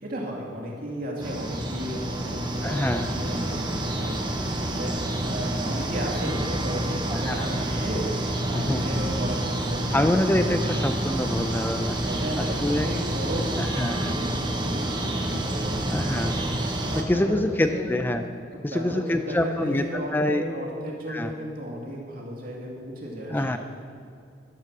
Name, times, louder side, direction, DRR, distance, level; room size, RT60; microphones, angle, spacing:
voice 1, 0.0-4.9 5.2-8.1 8.4-10.2 12.0-16.4 16.8-17.9 18.5-23.6, equal, 55° right, -2 dB, 2.4 m, -34 dB
sound 1, 1.2-17.0, right 1 dB, 25° right, 1.1 m, -28 dB
voice 2, 2.6-3.1 7.1-7.5 8.5-8.9 9.9-12.0 12.4-12.9 13.6-14.2 15.9-16.3 16.9-18.2 18.6-20.4 21.1-21.3 23.3-23.6, left 1 dB, 10° left, 7 dB, 0.4 m, -26 dB
12.5 x 8.4 x 6.0 m, 2.3 s
head